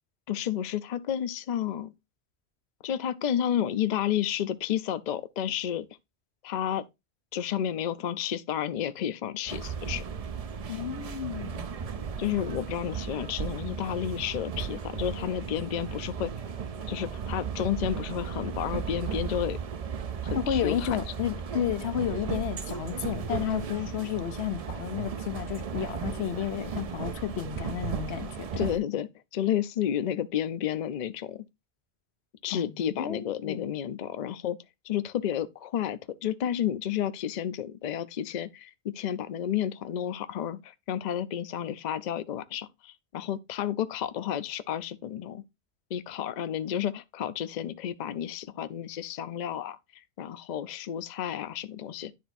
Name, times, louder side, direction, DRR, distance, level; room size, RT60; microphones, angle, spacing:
voice 1, 0.3-1.9 2.8-5.8 6.4-6.9 7.3-10.0 12.2-16.3 16.9-19.6 20.2-21.0 28.6-31.5 32.4-34.6 34.8-45.4 45.9-52.1, left 10 dB, 50° left, 0.6 m, -31 dB
sound 1, 9.5-28.8, right 6 dB, 45° right, 0.5 m, -35 dB
voice 2, 10.7-11.7 20.3-28.6 32.5-33.8, left 10 dB, 90° left, 1.0 m, -32 dB
10.0 x 3.4 x 4.1 m
omnidirectional pair, 1.1 m